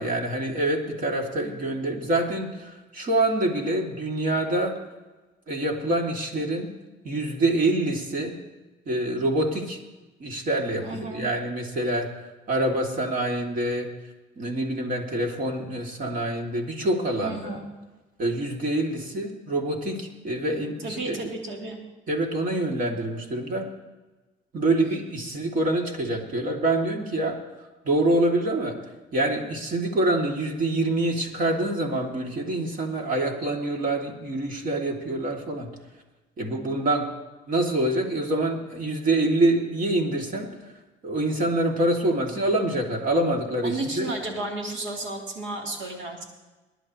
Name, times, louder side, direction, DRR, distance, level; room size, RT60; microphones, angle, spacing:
voice 1, 0.0-4.8 5.5-6.7 7.0-8.4 8.8-9.8 10.2-12.1 12.5-13.9 14.4-17.6 18.2-21.3 22.1-23.7 24.5-27.4 27.8-28.7 29.1-35.7 36.4-37.1 37.5-40.7 41.0-44.1, right 1 dB, 50° right, 1 dB, 3.0 m, -26 dB
voice 2, 10.8-11.3 17.2-17.7 20.8-21.8 43.6-46.2, right 2 dB, 85° right, 0 dB, 3.6 m, -33 dB
22.5 x 11.0 x 3.2 m, 1.2 s
cardioid pair, 95°, 18 cm